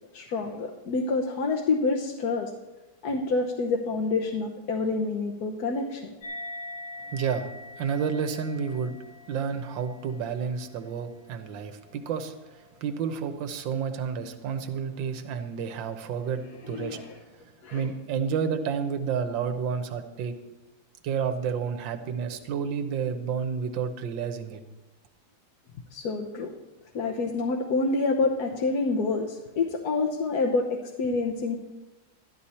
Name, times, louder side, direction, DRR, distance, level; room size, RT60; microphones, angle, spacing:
voice 1, 0.1-2.5 3.0-6.0 16.6-17.1 17.6-17.9 25.9-26.5 26.9-31.6, left 3 dB, 60° left, 1 dB, 1.4 m, -27 dB
sound 1, 6.2-13.1, left 1 dB, 85° left, 2.9 m, -44 dB
voice 2, 7.1-9.0 9.3-17.0 17.3-17.5 17.7-20.4 21.0-24.6, right 6 dB, 80° right, 8 dB, 1.6 m, -30 dB
13.0 x 11.5 x 4.3 m, 1.1 s
omnidirectional pair, 2.1 m